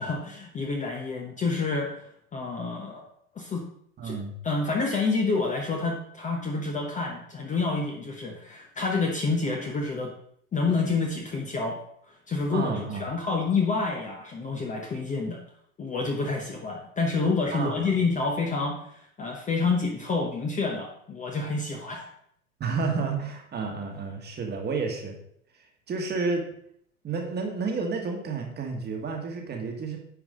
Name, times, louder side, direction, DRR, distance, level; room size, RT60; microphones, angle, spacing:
voice 1, 0.0-2.0 2.3-3.0 3.3-3.7 4.0-4.2 4.4-10.1 10.5-11.8 12.3-15.4 15.8-22.1, left 4 dB, 15° left, 0 dB, 0.9 m, -28 dB
voice 2, 4.0-4.3 12.5-13.0 17.5-17.9 22.6-25.1 25.9-26.4 27.0-30.0, right 4 dB, 20° right, 2 dB, 1.5 m, -30 dB
9.6 x 4.7 x 3.7 m, 0.69 s
hypercardioid pair, 105°, 45 cm